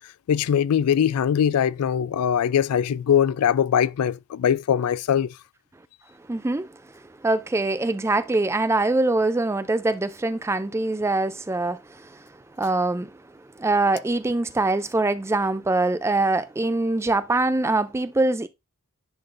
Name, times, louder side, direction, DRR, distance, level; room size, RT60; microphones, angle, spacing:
voice 1, 0.3-5.3, left 8 dB, 80° left, 0.3 m, -21 dB
voice 2, 6.3-6.8 7.2-12.3 12.6-18.5, right 2 dB, 10° right, 0.3 m, -24 dB
10.5 x 3.9 x 2.5 m
head